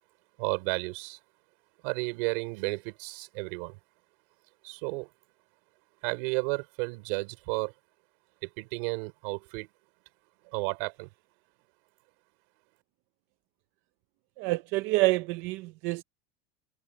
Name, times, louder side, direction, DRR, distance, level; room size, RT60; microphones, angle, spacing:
voice 1, 0.4-1.2 1.8-3.8 4.6-5.1 6.0-7.7 8.4-9.7 10.4-11.1, right 31 dB, 60° right, 5.4 m, -32 dB
voice 2, 14.4-16.0, right 21 dB, 35° right, 0.5 m, -27 dB
supercardioid pair, 175°, 31 cm